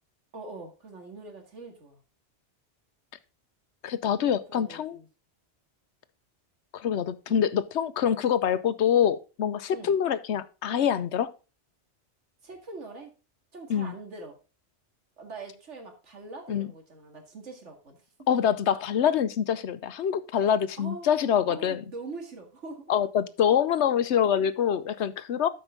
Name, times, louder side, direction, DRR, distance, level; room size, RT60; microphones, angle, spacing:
voice 1, 0.3-2.0 4.2-5.1 7.3-7.4 9.7-10.0 12.4-13.1 13.5-14.4 15.2-18.3 20.8-21.1 21.5-22.9, right 3 dB, 85° right, 3 dB, 2.4 m, -43 dB
voice 2, 3.8-5.0 6.7-11.3 13.7-13.9 16.5-16.7 18.3-21.8 22.9-25.5, left 8 dB, 75° left, 14 dB, 1.0 m, -25 dB
12.5 x 5.3 x 3.7 m, 0.32 s
omnidirectional pair, 1.2 m